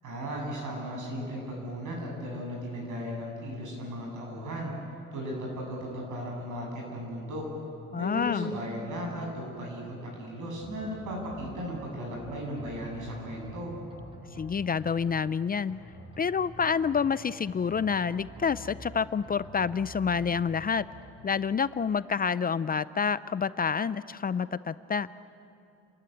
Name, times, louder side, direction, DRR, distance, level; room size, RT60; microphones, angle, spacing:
voice 1, 0.0-4.7 5.1-7.4 8.0-13.8, equal, 80° right, -1 dB, 7.9 m, -36 dB
voice 2, 7.9-8.5 14.4-15.8 16.2-20.9 21.2-25.1, left 6 dB, 30° left, 16 dB, 0.5 m, -28 dB
sound 1, 10.6-11.8 12.1-13.6 13.9-15.3 15.7-17.1 17.5-18.9 19.2-20.7 21.0-21.1, equal, 20° right, 7.6 m, -48 dB
30.0 x 14.0 x 9.6 m, 2.7 s
cardioid pair, 90°, 30 cm